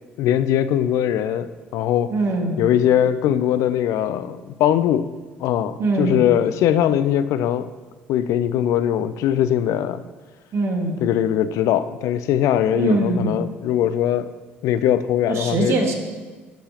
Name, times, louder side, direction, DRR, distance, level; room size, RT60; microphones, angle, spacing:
voice 1, 0.2-2.1 2.6-5.1 5.4-7.7 8.1-10.0 11.0-14.3 14.6-15.8, left 10 dB, 65° left, 13 dB, 0.4 m, -21 dB
voice 2, 2.1-2.6 5.8-6.2 10.5-11.0 12.7-13.3 15.3-15.9, right 2 dB, 55° right, 2 dB, 1.8 m, -22 dB
16.0 x 5.6 x 3.0 m, 1.3 s
hypercardioid pair, 60°, 6 cm